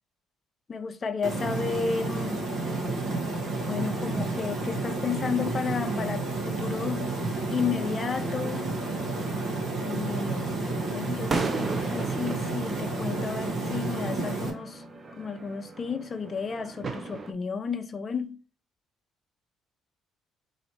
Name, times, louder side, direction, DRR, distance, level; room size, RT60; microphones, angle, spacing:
voice 1, 0.7-2.4 3.6-7.1 7.5-8.7 9.8-10.6 10.9-14.8 15.2-18.4, left 5 dB, 35° left, 0.8 m, -32 dB
sound 1, 1.2-14.5, right 3 dB, 50° right, 1.6 m, -31 dB
sound 2, 8.1-17.3, right 4 dB, 35° right, 0.7 m, -37 dB
4.0 x 3.0 x 4.4 m
supercardioid pair, 80°, 0 cm